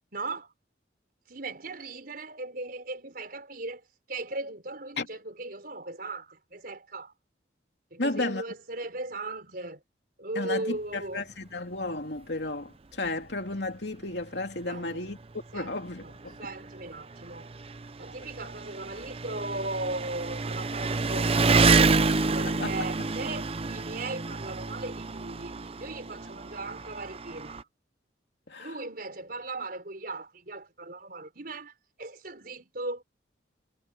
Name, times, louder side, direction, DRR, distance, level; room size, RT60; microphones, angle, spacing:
voice 1, 0.1-0.5 1.3-3.8 4.1-7.1 7.9-9.8 10.2-11.3 14.7-15.0 15.5-15.8 16.0-16.1 16.4-17.5 18.0-21.9 22.3-25.5 25.8-27.6 28.6-33.0, right 2 dB, 55° right, 5.0 m, -38 dB
voice 2, 8.0-8.4 10.3-15.2 15.5-16.4 22.4-22.9 28.5-28.7, left 2 dB, 65° left, 3.2 m, -33 dB
Engine, 13.1-13.2 13.5-13.6 14.6-14.7 14.9-27.6, right 4 dB, 30° right, 0.6 m, -28 dB
head